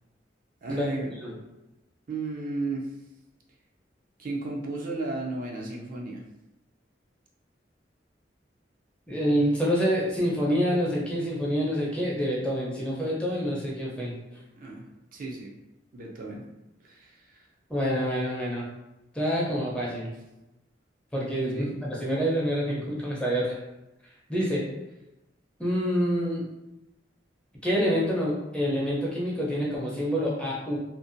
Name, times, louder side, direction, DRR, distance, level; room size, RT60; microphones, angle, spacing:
voice 1, 0.6-1.1 2.1-3.0 4.2-6.2 14.5-14.9 15.1-15.5 15.9-16.4 16.8-17.5 21.5-21.7, right 2 dB, 50° right, -1 dB, 0.4 m, -34 dB
voice 2, 9.1-14.2 17.7-18.6 19.1-20.1 21.1-23.6 24.3-24.7 25.6-26.4 27.6-30.8, equal, 5° left, -6 dB, 0.6 m, -27 dB
2.5 x 2.1 x 2.5 m, 0.96 s
head